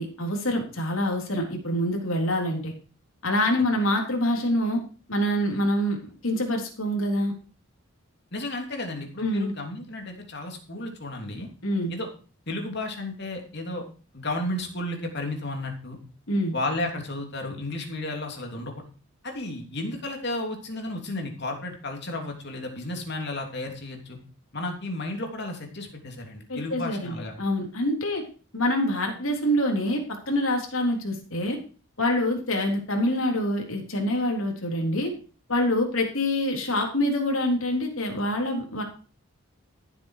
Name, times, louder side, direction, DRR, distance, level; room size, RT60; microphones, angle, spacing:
voice 1, 0.0-2.7 3.2-4.8 5.1-7.3 9.2-9.5 11.6-11.9 16.3-16.5 26.5-28.2 28.5-31.6 32.0-35.1 35.5-38.8, left 1 dB, 70° left, 1 dB, 3.7 m, -26 dB
voice 2, 8.3-11.5 11.9-12.1 12.5-13.8 14.1-16.0 16.5-18.7 19.2-24.2 24.5-27.3, left 2 dB, 50° left, 3 dB, 3.1 m, -33 dB
14.0 x 8.1 x 4.9 m, 0.38 s
head